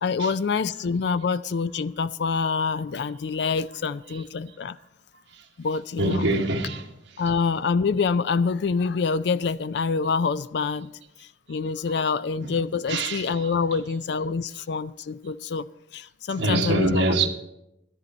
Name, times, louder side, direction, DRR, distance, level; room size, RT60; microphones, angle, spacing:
voice 1, 0.0-4.8 5.6-6.3 7.2-10.9 11.2-17.2, left 5 dB, 60° left, 0.4 m, -26 dB
voice 2, 6.0-6.9 7.2-7.3 11.9-12.0 12.4-12.6 12.9-13.8 16.4-17.3, right 2 dB, 65° right, 1.3 m, -25 dB
12.5 x 10.5 x 4.2 m
head